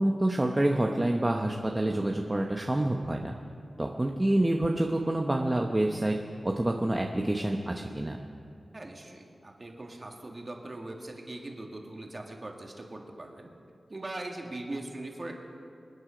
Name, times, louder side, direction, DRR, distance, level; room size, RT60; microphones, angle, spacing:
voice 1, 0.0-3.3 3.8-8.2, right 1 dB, 20° right, 2 dB, 0.8 m, -27 dB
voice 2, 8.7-13.5 13.9-15.3, right 2 dB, 35° right, 1 dB, 1.9 m, -40 dB
26.5 x 9.6 x 5.1 m, 2.4 s
wide cardioid pair, 110°, 0 cm